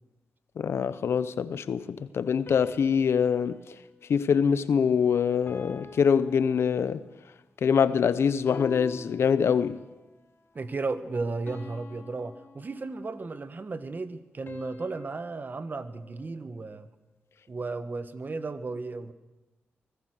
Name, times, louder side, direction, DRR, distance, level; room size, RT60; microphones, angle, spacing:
voice 1, 0.6-3.6 4.1-7.0 7.6-9.8, left 7 dB, 75° left, 0.9 m, -24 dB
sound 1, 2.5-5.0 5.5-7.2 8.5-10.0 11.5-13.3 14.5-16.8, left 3 dB, 50° left, 3.4 m, -48 dB
voice 2, 10.5-16.9 17.5-19.1, right 3 dB, 45° right, 1.5 m, -34 dB
25.0 x 18.5 x 6.6 m
cardioid pair, 60°, 4 cm